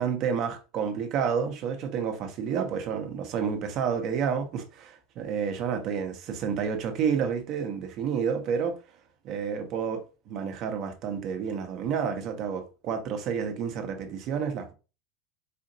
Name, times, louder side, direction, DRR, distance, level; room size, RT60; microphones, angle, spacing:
voice 1, 0.0-8.8 9.2-14.7, right 7 dB, 50° right, 0.8 m, -30 dB
4.3 x 2.7 x 2.6 m
hypercardioid pair, 100°, 0 cm